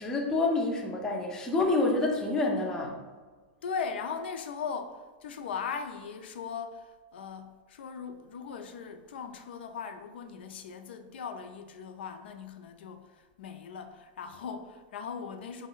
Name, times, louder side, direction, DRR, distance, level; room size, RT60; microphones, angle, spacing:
voice 1, 0.0-3.0, left 2 dB, 10° left, 0.4 m, -28 dB
voice 2, 3.6-15.7, left 6 dB, 80° left, 0.4 m, -39 dB
4.6 x 2.1 x 3.8 m
supercardioid pair, 165°, 6 cm